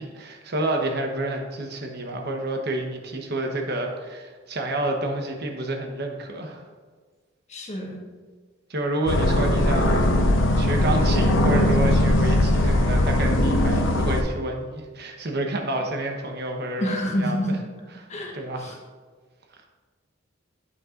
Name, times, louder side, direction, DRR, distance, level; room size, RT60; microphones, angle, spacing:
voice 1, 0.0-6.6 8.7-10.2 10.6-17.6 18.3-18.8, right 1 dB, 55° right, 2 dB, 1.0 m, -29 dB
voice 2, 7.5-8.0 16.8-17.6 18.1-18.8, equal, 35° left, 0 dB, 1.3 m, -28 dB
sound 1, 9.1-14.2, left 1 dB, 70° left, 0.8 m, -20 dB
9.5 x 8.6 x 2.5 m, 1.5 s
head